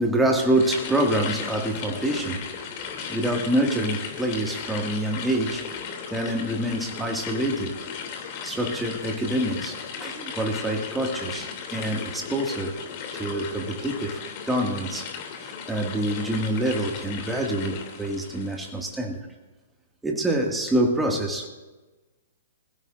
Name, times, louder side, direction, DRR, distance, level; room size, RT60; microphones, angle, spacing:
voice 1, 0.0-7.9 8.4-12.8 13.1-14.2 14.5-15.1 15.4-19.2 20.0-21.5, right 1 dB, 5° right, 1 dB, 2.1 m, -26 dB
sound 1, 0.5-18.8, left 6 dB, 40° left, 2.8 m, -36 dB
25.5 x 16.0 x 2.6 m, 1.2 s
figure-of-eight pair, 120°, 0 cm